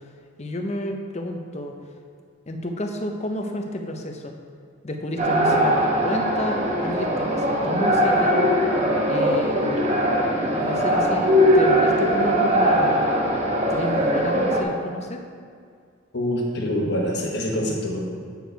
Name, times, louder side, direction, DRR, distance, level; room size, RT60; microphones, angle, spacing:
voice 1, 0.4-1.7 2.5-4.4 4.8-8.5 9.1-9.8 10.5-13.0 13.7-15.2, left 1 dB, 30° left, 3 dB, 0.6 m, -30 dB
sound 1, 5.2-14.6, equal, 35° right, 0.9 m, -20 dB
voice 2, 16.1-18.0, equal, 55° left, -1 dB, 1.2 m, -25 dB
8.3 x 4.6 x 4.6 m, 2.2 s
head